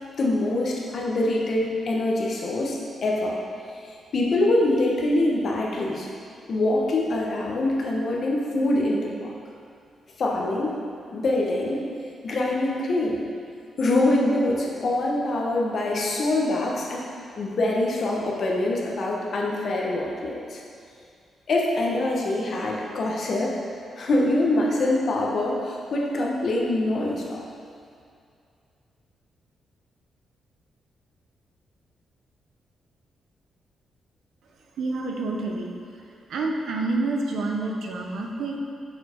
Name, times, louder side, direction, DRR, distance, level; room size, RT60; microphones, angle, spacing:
voice 1, 0.2-3.3 4.1-6.1 6.5-9.3 10.2-10.7 11.1-11.8 12.2-13.2 13.8-17.0 17.4-20.6 21.5-23.6 24.0-27.4, left 2 dB, 55° left, -2 dB, 1.1 m, -24 dB
voice 2, 34.8-35.7 36.3-38.6, right 3 dB, 75° right, 1 dB, 0.8 m, -28 dB
6.7 x 4.6 x 4.4 m, 2.4 s
cardioid pair, 90°, 0 cm